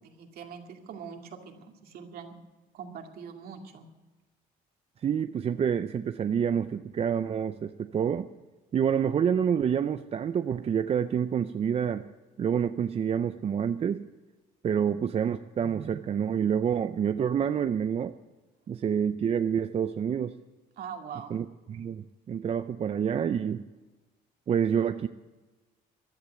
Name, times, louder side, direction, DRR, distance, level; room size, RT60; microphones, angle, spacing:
voice 1, 0.0-2.4 2.7-3.9 20.8-21.4, right 7 dB, 65° right, 3 dB, 2.3 m, -43 dB
voice 2, 5.0-8.3 8.7-12.0 12.4-14.0 14.6-18.1 18.7-20.3 21.3-23.6 24.5-25.1, right 8 dB, 35° right, 10 dB, 0.5 m, -28 dB
15.5 x 11.0 x 8.1 m, 1.2 s
cardioid pair, 110°, 17 cm